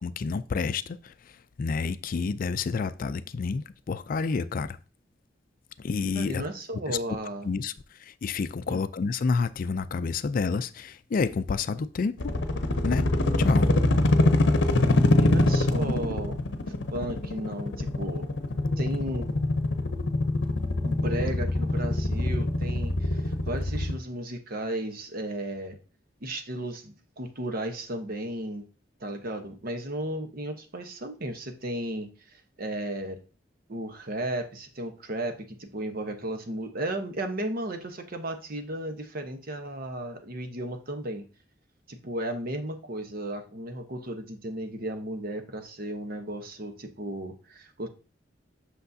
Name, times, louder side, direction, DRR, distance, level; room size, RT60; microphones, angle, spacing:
voice 1, 0.0-4.8 5.8-6.4 6.9-7.0 7.4-12.3 12.8-13.1 13.4-13.7, left 4 dB, 50° left, 0.4 m, -29 dB
voice 2, 6.1-7.5 8.7-8.8 15.2-16.4 16.9-18.3 18.8-19.3 20.8-25.8 26.2-28.6 29.0-33.2 33.7-41.2 41.9-47.9, right 1 dB, 55° right, 1.0 m, -34 dB
sound 1, 12.2-24.0, left 2 dB, 70° left, 0.7 m, -24 dB
8.1 x 6.4 x 2.7 m
head